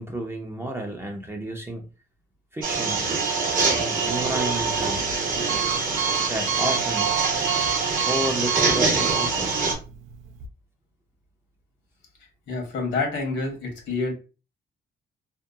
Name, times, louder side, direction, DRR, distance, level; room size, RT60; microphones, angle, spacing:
voice 1, 0.0-1.9 2.5-3.1 3.8-5.1 6.3-7.2 8.1-9.6, right 1 dB, 10° right, 0.5 m, -31 dB
sound 1, 2.6-9.7, right 4 dB, 45° right, 0.8 m, -24 dB
Alarm, 4.1-10.5, right 9 dB, 80° right, 0.4 m, -31 dB
voice 2, 12.2-14.1, left 3 dB, 65° left, 1.0 m, -28 dB
2.7 x 2.2 x 2.3 m
cardioid pair, 90°, 20 cm